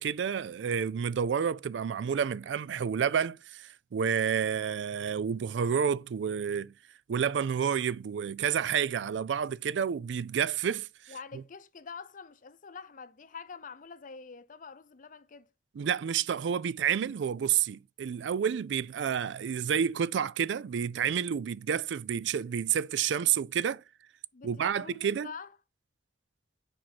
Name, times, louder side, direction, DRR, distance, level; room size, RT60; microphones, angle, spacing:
voice 1, 0.0-6.7 7.1-10.9 15.8-23.8 24.4-25.3, right 7 dB, 90° right, 0.4 m, -29 dB
voice 2, 11.1-15.5 24.3-25.5, left 5 dB, 50° left, 0.6 m, -46 dB
7.5 x 4.6 x 4.1 m
head